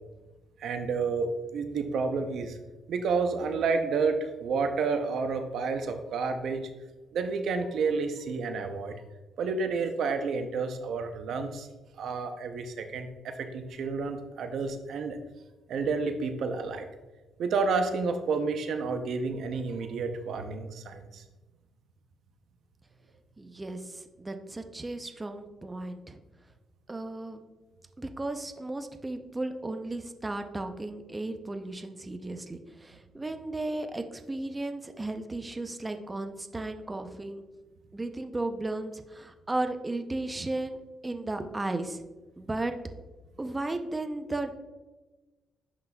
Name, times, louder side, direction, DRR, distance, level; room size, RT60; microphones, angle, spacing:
voice 1, 0.6-2.6 2.9-6.6 7.1-8.9 9.4-11.7 12.0-15.2 15.7-16.9 17.4-21.2, right 4 dB, 70° right, 7 dB, 0.6 m, -30 dB
voice 2, 23.4-26.2 26.9-27.4 28.0-37.4 37.9-40.8 41.0-42.0 42.4-42.7 43.4-44.5, right 2 dB, 20° right, 6 dB, 0.5 m, -35 dB
11.0 x 3.9 x 2.3 m, 1.2 s
cardioid pair, 90°, 0 cm